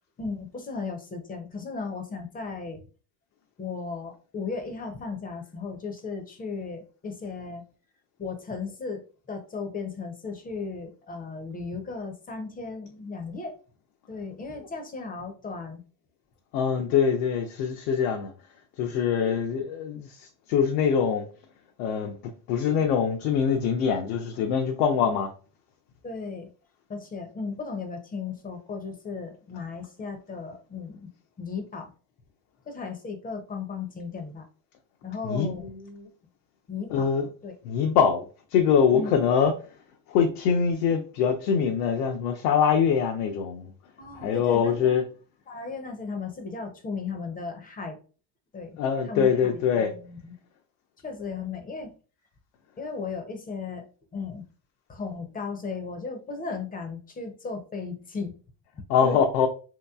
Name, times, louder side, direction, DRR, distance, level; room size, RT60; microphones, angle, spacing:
voice 1, 0.2-2.8 3.6-7.6 8.2-13.6 14.1-15.8 26.0-26.5 26.9-31.1 31.4-31.9 32.7-34.4 35.0-35.7 36.7-37.1 37.4-37.5 38.9-39.1 44.0-45.0 45.5-48.0 48.5-48.8 49.0-50.3 51.0-51.9 52.8-53.9 54.1-54.5 54.9-58.4 59.0-59.2, left 4 dB, 20° left, 0.5 m, -36 dB
voice 2, 16.5-18.3 18.8-20.1 20.5-21.3 21.8-22.1 22.5-25.3 35.2-36.1 36.9-37.3 37.7-38.2 38.5-39.5 40.1-43.7 44.2-45.0 48.8-49.9 58.9-59.5, left 7 dB, 85° left, 0.6 m, -23 dB
3.1 x 2.9 x 2.2 m
supercardioid pair, 110°, 43 cm